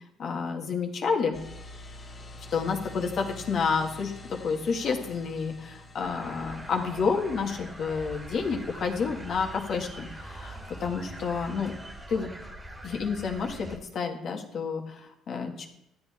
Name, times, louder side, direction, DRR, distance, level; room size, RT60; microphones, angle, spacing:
voice 1, 0.2-1.4 2.5-11.8 12.1-12.3 12.8-15.7, left 5 dB, 55° left, 3 dB, 2.0 m, -30 dB
sound 1, 1.3-12.1, left 1 dB, 40° left, 2.2 m, -47 dB
sound 2, 6.0-13.8, right 1 dB, 20° right, 2.0 m, -43 dB
13.0 x 8.6 x 4.5 m, 0.83 s
cardioid pair, 95°, 0 cm